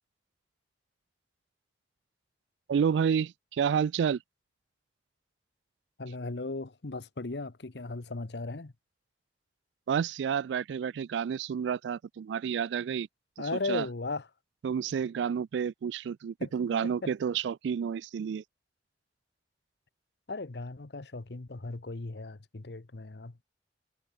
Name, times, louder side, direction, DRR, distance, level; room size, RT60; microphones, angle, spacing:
voice 1, 2.7-4.2 9.9-13.1 13.7-13.9 14.6-18.4, right 7 dB, 85° right, 0.3 m, -30 dB
voice 2, 6.0-8.7 13.4-14.3 16.4-16.5 16.8-17.1 20.3-23.4, left 3 dB, 65° left, 1.0 m, -37 dB
head